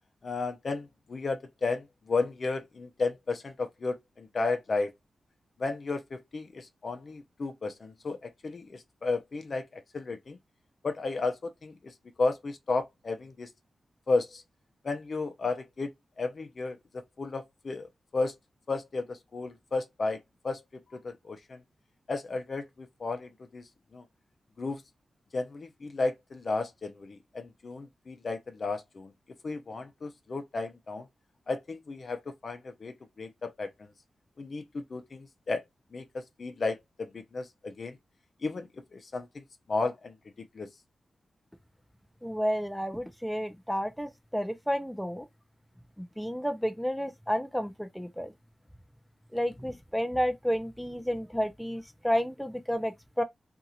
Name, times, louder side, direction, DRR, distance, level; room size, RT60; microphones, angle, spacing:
voice 1, 0.2-4.9 5.6-10.4 10.8-13.5 14.1-14.4 14.8-15.9 16.2-18.3 18.7-21.6 22.1-24.0 24.6-24.8 25.3-29.1 29.4-31.1 31.5-33.9 34.4-35.6 35.9-38.0 38.4-40.7, left 3 dB, 55° left, 0.7 m, -33 dB
voice 2, 42.2-45.2 46.0-48.3 49.3-53.2, equal, ahead, 0.5 m, -31 dB
2.8 x 2.6 x 2.4 m
cardioid pair, 70°, 0 cm